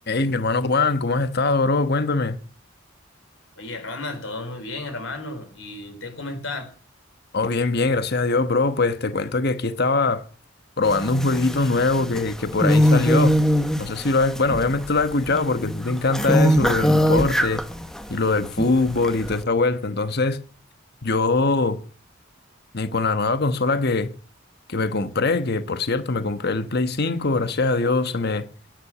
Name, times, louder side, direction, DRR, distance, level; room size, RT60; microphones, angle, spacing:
voice 1, 0.1-2.4 7.3-10.2 10.8-13.3 13.8-17.7 18.1-20.4 21.0-21.8 22.7-24.1 24.7-28.4, left 3 dB, 55° left, 1.1 m, -22 dB
voice 2, 3.6-6.7, left 2 dB, 75° left, 4.5 m, -33 dB
sound 1, 10.8-18.1 18.4-19.4, equal, 5° left, 1.0 m, -22 dB
11.5 x 10.5 x 7.9 m
head